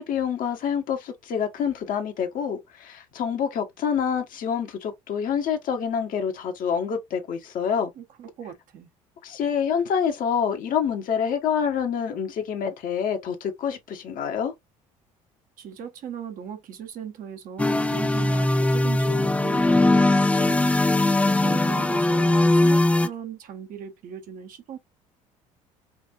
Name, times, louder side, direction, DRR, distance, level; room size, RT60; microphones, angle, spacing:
voice 1, 0.0-7.9 9.2-14.5, left 7 dB, 50° left, 1.1 m, -27 dB
voice 2, 8.0-8.9 15.6-21.1 21.4-24.8, right 8 dB, 55° right, 1.0 m, -39 dB
sound 1, 17.6-23.1, left 2 dB, 10° left, 0.5 m, -20 dB
5.1 x 2.6 x 2.4 m
hypercardioid pair, 60°, 17 cm